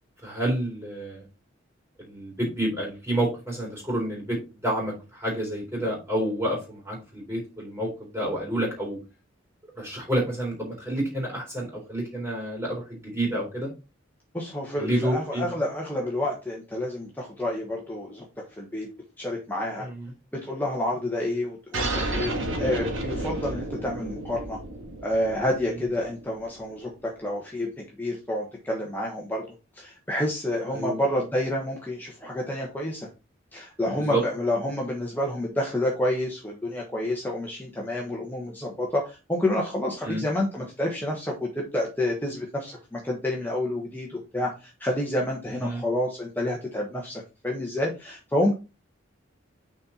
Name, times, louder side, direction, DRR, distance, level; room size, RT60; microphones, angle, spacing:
voice 1, 0.2-1.2 2.0-4.4 4.6-4.9 5.2-9.0 9.8-13.7 14.8-15.5 19.8-20.1 30.7-31.0 34.0-34.2 40.0-40.2 45.6-45.8, right 1 dB, 10° right, -2 dB, 3.7 m, -29 dB
voice 2, 14.3-18.2 18.5-18.9 19.2-19.9 20.3-24.6 25.0-26.9 27.2-29.4 29.8-33.1 33.5-48.5, left 1 dB, 10° left, -2 dB, 1.2 m, -29 dB
sound 1, 21.7-26.8, right 2 dB, 75° right, 1.6 m, -32 dB
6.3 x 4.5 x 4.2 m, 0.29 s
head